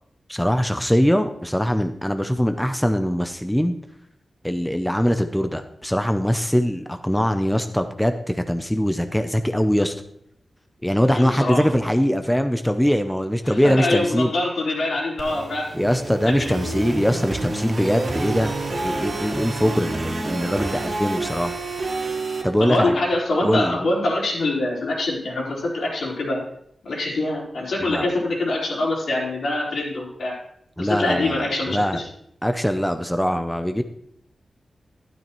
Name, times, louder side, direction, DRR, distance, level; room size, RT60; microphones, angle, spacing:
voice 1, 0.3-3.8 4.4-10.0 10.8-14.3 15.7-18.5 18.8-21.5 22.4-23.0 23.4-23.8 27.8-28.1 30.8-32.0 32.4-33.8, equal, 5° left, 8 dB, 0.5 m, -22 dB
voice 2, 11.1-11.6 13.4-15.6 16.2-16.6 22.6-26.4 26.8-30.4 30.8-32.1, left 2 dB, 80° left, -4 dB, 4.2 m, -24 dB
sound 1, 15.2-22.4, right 2 dB, 55° right, 2.2 m, -29 dB
12.0 x 12.0 x 3.1 m, 0.71 s
wide cardioid pair, 130°, 0 cm